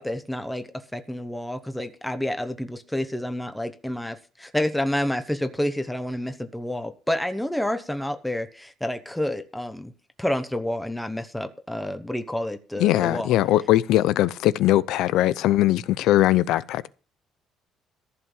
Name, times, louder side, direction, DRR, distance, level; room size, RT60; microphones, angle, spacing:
voice 1, 0.0-9.9 10.2-13.3, left 1 dB, 5° left, 1.0 m, -29 dB
voice 2, 12.8-16.9, left 14 dB, 85° left, 0.6 m, -20 dB
15.0 x 5.8 x 7.3 m
cardioid pair, 170°, 0 cm